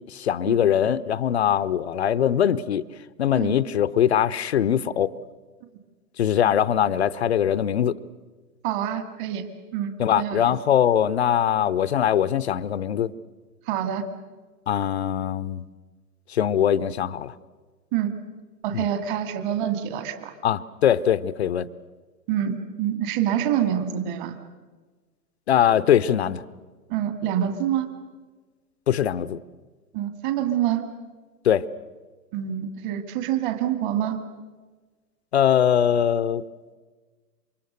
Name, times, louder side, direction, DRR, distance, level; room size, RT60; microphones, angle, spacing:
voice 1, 0.1-2.8 3.2-5.1 6.2-7.9 10.0-13.1 14.7-15.6 16.3-17.3 18.7-18.8 20.4-21.7 25.5-26.4 28.9-29.4 31.4-31.6 35.3-36.4, left 9 dB, 40° left, 16 dB, 0.8 m, -22 dB
voice 2, 8.6-9.4 9.7-10.5 13.6-14.0 17.9-18.1 18.6-20.3 22.3-24.3 26.9-27.9 29.9-30.9 32.3-34.2, right 10 dB, 30° right, 8 dB, 2.2 m, -26 dB
28.5 x 25.0 x 6.7 m, 1.3 s
figure-of-eight pair, 125°, 49 cm